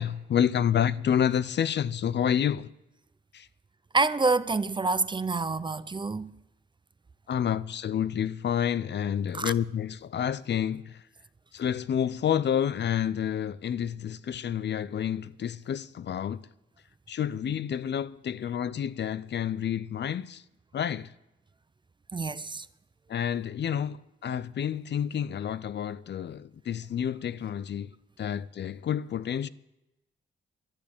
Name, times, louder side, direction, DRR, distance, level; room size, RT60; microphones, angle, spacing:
voice 1, 0.0-2.7 3.3-3.5 7.3-11.0 11.5-16.5 17.1-20.4 20.7-21.1 23.1-27.9 28.2-29.5, left 9 dB, 55° left, 0.5 m, -29 dB
voice 2, 3.9-6.3 9.3-9.5 22.1-22.7, right 3 dB, 20° right, 0.5 m, -27 dB
12.0 x 10.5 x 8.6 m
wide cardioid pair, 115°, 21 cm